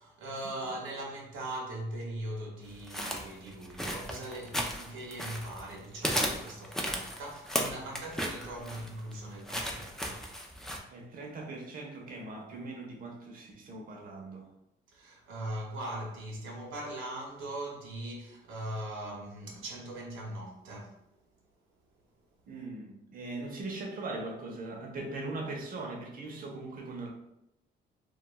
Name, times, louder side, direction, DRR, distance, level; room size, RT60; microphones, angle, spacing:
voice 1, 0.0-10.3 14.9-21.0, right 1 dB, 85° right, 0.7 m, -40 dB
sound 1, 2.9-5.7 6.0-10.8, equal, ahead, 0.4 m, -35 dB
voice 2, 10.9-14.5 22.5-27.1, right 2 dB, 45° right, 0.6 m, -40 dB
2.2 x 2.2 x 2.9 m
cardioid pair, 90°, 20 cm